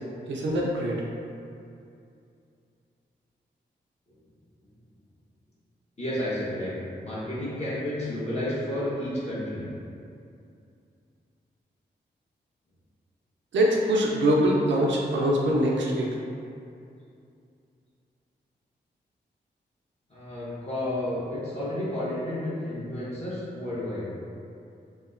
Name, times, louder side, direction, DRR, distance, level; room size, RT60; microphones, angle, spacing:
voice 1, 0.3-1.0 13.5-16.1, right 1 dB, 75° right, -2 dB, 0.4 m, -23 dB
voice 2, 6.0-6.7 7.0-9.7 20.1-24.1, left 1 dB, 35° left, -9 dB, 1.1 m, -31 dB
2.8 x 2.1 x 2.4 m, 2.5 s
supercardioid pair, 45°, 19 cm